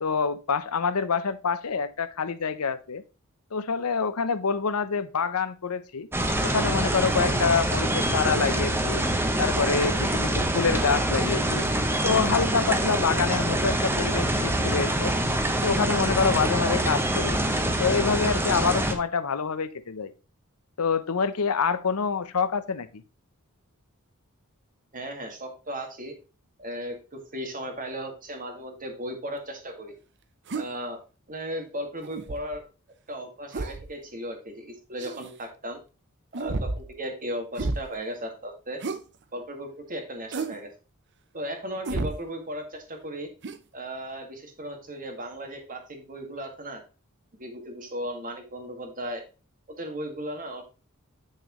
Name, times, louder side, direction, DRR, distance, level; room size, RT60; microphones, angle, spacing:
voice 1, 0.0-3.0 3.5-6.1 6.4-9.0 9.4-11.7 12.0-15.1 15.6-17.4 17.8-20.1 20.8-23.0, left 5 dB, 85° left, 0.7 m, -26 dB
sound 1, 6.1-18.9, right 1 dB, 10° right, 1.1 m, -25 dB
voice 2, 24.9-26.1 26.6-30.0 30.5-31.0 31.3-32.6 33.1-35.8 36.3-38.8 39.3-40.7 41.3-43.3 43.7-46.8 47.4-49.2 49.8-50.6, equal, 40° right, 2.0 m, -36 dB
sound 2, 30.5-30.7 32.0-32.6 33.5-33.9 35.0-35.3 36.3-36.9 37.5-37.9 38.8-39.0 40.3-40.6 41.8-42.2 43.4-43.6, right 3 dB, 55° right, 0.7 m, -31 dB
8.5 x 6.5 x 3.1 m
head